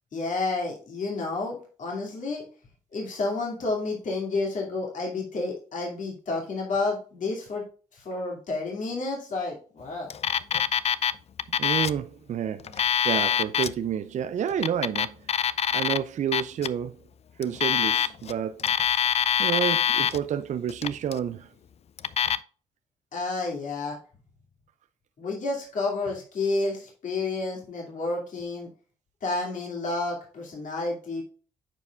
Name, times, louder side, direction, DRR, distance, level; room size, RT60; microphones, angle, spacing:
voice 1, 0.1-2.4 2.9-7.6 7.9-10.1 23.1-24.0 25.2-28.7 29.2-31.2, left 3 dB, 60° left, 2.5 m, -30 dB
Alarm, 10.1-11.1 11.4-12.0 12.6-13.7 14.5-16.0 16.3-16.7 17.4-18.3 18.6-20.2 20.7-21.2 22.0-22.4, left 8 dB, 45° left, 0.4 m, -24 dB
voice 2, 11.5-15.2 15.7-17.0 17.4-19.1 19.4-21.5, right 8 dB, 55° right, 0.5 m, -30 dB
9.6 x 4.8 x 2.4 m
supercardioid pair, 50°, 15 cm